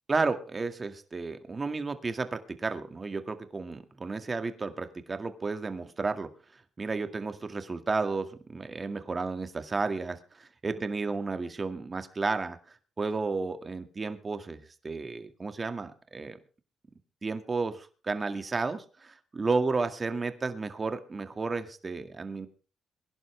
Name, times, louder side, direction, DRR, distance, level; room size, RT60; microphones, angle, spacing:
voice 1, 0.1-6.3 6.8-12.6 13.0-16.4 17.2-22.5, right 4 dB, 30° right, 9 dB, 2.0 m, -32 dB
22.5 x 11.5 x 3.4 m, 0.37 s
cardioid pair, 90°, 0 cm